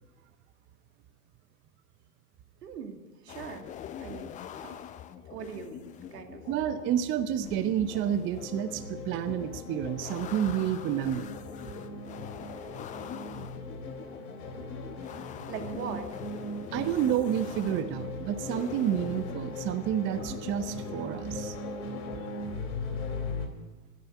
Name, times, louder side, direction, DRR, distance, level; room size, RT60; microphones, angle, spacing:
voice 1, 2.6-3.7 4.0-4.8 5.3-6.4 15.5-16.1, right 6 dB, 70° right, 4 dB, 2.5 m, -41 dB
sound 1, 3.3-22.2, left 9 dB, 15° left, 0.5 m, -44 dB
voice 2, 6.5-11.3 16.7-21.6, right 10 dB, 25° right, 10 dB, 0.6 m, -29 dB
sound 2, 8.4-23.5, left 2 dB, 60° left, 3.6 m, -39 dB
12.0 x 11.5 x 8.2 m, 1.3 s
hypercardioid pair, 100°, 50 cm